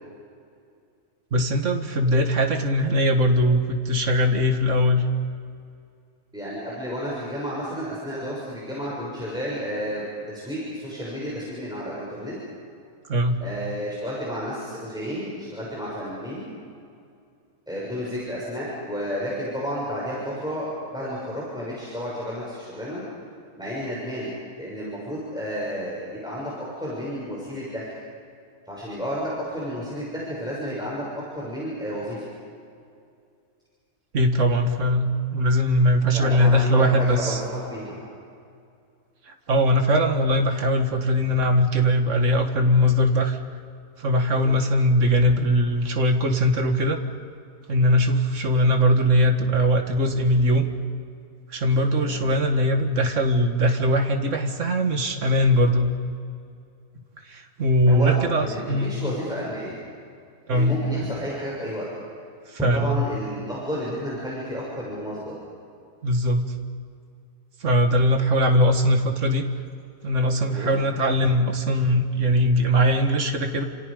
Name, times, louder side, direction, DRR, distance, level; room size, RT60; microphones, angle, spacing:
voice 1, 1.3-5.0 13.1-13.4 34.1-37.4 39.3-43.4 44.0-47.0 47.7-50.7 51.5-55.9 57.3-59.0 60.5-60.8 62.5-63.0 66.0-66.4 67.6-69.4 70.0-73.6, equal, 50° right, 4 dB, 2.1 m, -21 dB
voice 2, 6.3-12.4 13.4-16.5 17.7-23.0 23.6-27.9 28.7-32.2 36.1-38.0 44.3-44.5 52.0-52.2 57.9-59.8 60.5-61.8 62.7-65.3 70.5-70.7, equal, 5° right, -7 dB, 6.8 m, -31 dB
29.5 x 28.0 x 5.2 m, 2.3 s
omnidirectional pair, 1.6 m